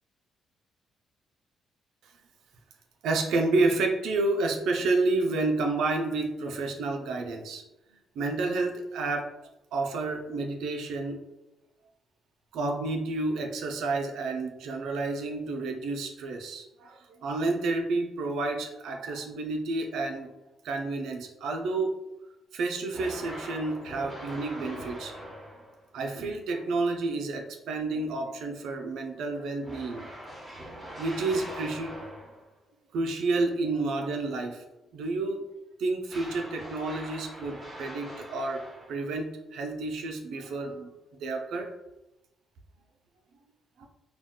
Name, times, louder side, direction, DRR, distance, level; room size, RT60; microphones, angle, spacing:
voice 1, 3.0-7.6 8.2-9.3 9.7-11.2 12.5-20.3 20.6-21.9 22.5-25.1 25.9-30.1 30.5-31.9 32.9-34.6 34.9-35.4 35.8-40.9 41.2-41.7 43.8-43.9, right 3 dB, 80° right, 2 dB, 0.4 m, -30 dB
sound 1, 22.9-25.9 29.6-32.5 36.1-39.2, equal, 10° right, 1.0 m, -42 dB
2.3 x 2.2 x 3.6 m, 0.97 s
cardioid pair, 90°, 0 cm